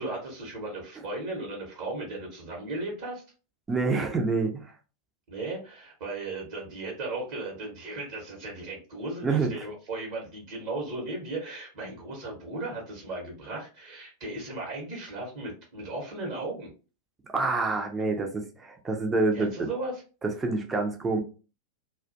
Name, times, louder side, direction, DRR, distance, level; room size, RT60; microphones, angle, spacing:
voice 1, 0.0-3.2 5.3-16.7 19.3-20.0, right 2 dB, 45° right, -2 dB, 0.9 m, -36 dB
voice 2, 3.7-4.7 9.2-9.7 17.3-19.7 20.2-21.2, right 3 dB, 15° right, 4 dB, 0.5 m, -27 dB
2.4 x 2.2 x 2.5 m, 0.34 s
figure-of-eight pair, 90°, 0 cm